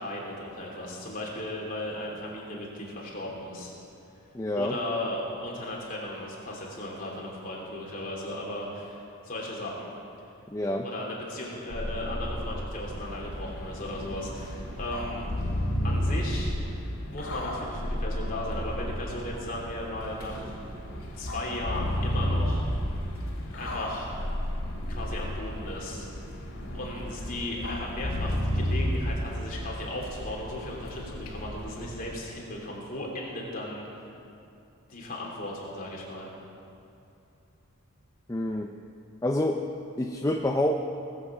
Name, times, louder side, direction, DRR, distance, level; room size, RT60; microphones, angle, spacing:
voice 1, 0.0-3.7 4.6-9.9 10.8-15.3 15.8-16.6 17.1-20.5 21.1-22.7 23.5-24.1 24.9-26.1 26.7-34.1 34.9-36.3, left 1 dB, 40° left, -3 dB, 3.1 m, -36 dB
voice 2, 4.3-4.8 10.5-10.8 38.3-38.7 39.2-39.6 40.0-40.8, left 1 dB, 15° left, 3 dB, 0.5 m, -27 dB
sound 1, 11.7-29.1, equal, 55° left, 3.2 m, -32 dB
sound 2, 13.0-32.2, left 1 dB, 80° left, 2.3 m, -43 dB
19.5 x 7.3 x 7.4 m, 2.6 s
head